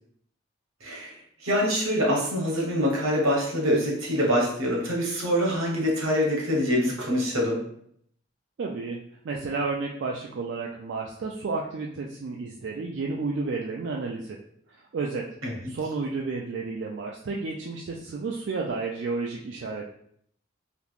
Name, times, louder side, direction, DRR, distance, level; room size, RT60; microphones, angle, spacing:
voice 1, 0.8-7.6 15.4-15.5, equal, 85° right, -2 dB, 1.1 m, -25 dB
voice 2, 8.6-9.0 9.2-14.4 14.9-15.3 15.7-19.9, right 4 dB, 60° right, -1 dB, 0.3 m, -31 dB
3.4 x 2.8 x 2.4 m, 0.67 s
head